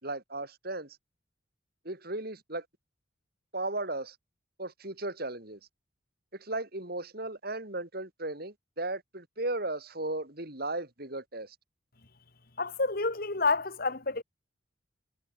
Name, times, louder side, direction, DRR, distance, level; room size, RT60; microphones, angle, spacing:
voice 1, 0.0-1.0 1.8-2.7 3.5-4.2 4.6-5.6 6.3-11.6, right 2 dB, 50° right, 4.0 m, -36 dB
voice 2, 12.6-14.2, left 3 dB, 50° left, 1.8 m, -29 dB
head